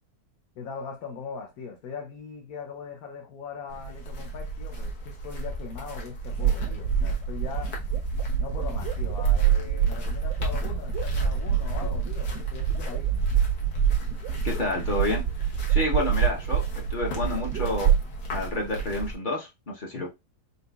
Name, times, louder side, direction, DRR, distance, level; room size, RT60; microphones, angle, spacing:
voice 1, 0.6-7.9 8.4-13.3 19.9-20.1, left 5 dB, 65° left, 1.2 m, -40 dB
sound 1, 3.7-19.1, right 3 dB, 90° left, 1.7 m, -31 dB
sound 2, 6.3-18.0, right 10 dB, 85° right, 1.2 m, -28 dB
voice 2, 14.4-15.2 15.7-17.9 18.3-20.1, left 2 dB, 35° left, 0.9 m, -29 dB
4.1 x 4.0 x 2.3 m
omnidirectional pair, 1.8 m